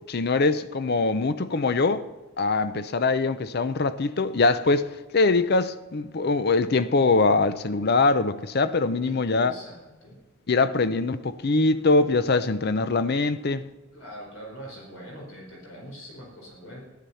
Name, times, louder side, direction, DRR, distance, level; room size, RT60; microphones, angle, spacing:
voice 1, 0.1-2.0 2.4-9.5 10.5-13.6, left 3 dB, 45° left, 0.6 m, -23 dB
voice 2, 9.0-10.2 13.9-16.8, equal, 70° left, 4.6 m, -43 dB
14.0 x 11.5 x 5.6 m
head